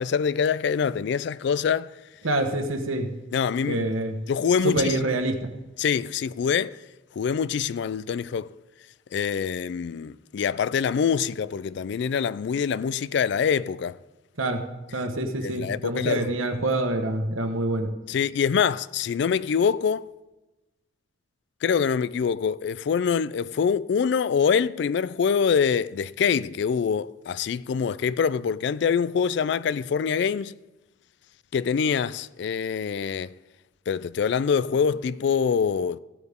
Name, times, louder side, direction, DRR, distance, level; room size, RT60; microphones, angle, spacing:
voice 1, 0.0-1.9 3.3-3.8 4.3-5.0 5.8-6.7 7.2-8.5 9.1-14.0 15.4-16.3 18.1-20.1 21.6-30.5 31.5-33.3 33.9-36.0, left 6 dB, 60° left, 0.3 m, -25 dB
voice 2, 2.2-3.1 3.7-4.1 4.6-5.4 14.4-14.6 14.9-17.9, right 2 dB, 90° right, 1.3 m, -26 dB
16.0 x 7.9 x 3.6 m
head